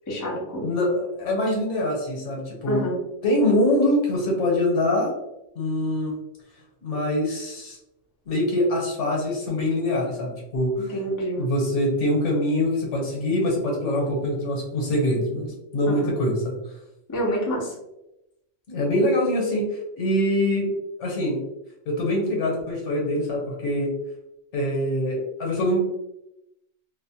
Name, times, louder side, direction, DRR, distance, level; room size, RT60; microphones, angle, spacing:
voice 1, 0.1-0.7 2.7-3.0 10.8-11.5 15.9-16.1 17.1-17.7, equal, 30° left, -3 dB, 0.3 m, -28 dB
voice 2, 0.6-2.8 3.2-5.1 5.5-6.1 6.8-7.8 8.3-10.9 11.4-16.5 18.7-19.7 20.0-20.7 21.0-21.4 21.9-23.9 24.5-25.9, left 1 dB, 65° left, -2 dB, 1.1 m, -24 dB
2.5 x 2.0 x 2.7 m, 0.87 s
omnidirectional pair, 1.4 m